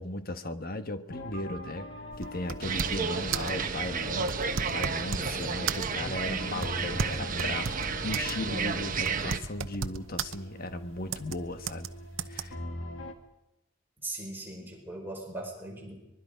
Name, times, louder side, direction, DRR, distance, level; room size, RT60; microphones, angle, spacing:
voice 1, 0.0-1.9 2.2-4.4 4.7-11.9 12.3-12.6 14.6-14.7, left 1 dB, 50° left, 8 dB, 1.3 m, -36 dB
sound 1, 1.1-13.1, left 1 dB, 65° left, 2.2 m, -44 dB
sound 2, 2.1-3.1 3.3-3.6 4.2-5.3 5.7-6.1 6.6-8.4 8.7-8.8 9.1-10.4 11.1-11.4 11.7-11.9 12.2-12.4, right 5 dB, 70° right, 0.9 m, -34 dB
sound 3, 2.6-9.4, right 5 dB, 45° right, 1.2 m, -32 dB
voice 2, 5.2-5.7 6.0-6.5 14.0-16.0, right 1 dB, 10° right, -1 dB, 5.1 m, -40 dB
23.5 x 22.0 x 5.1 m, 0.93 s
head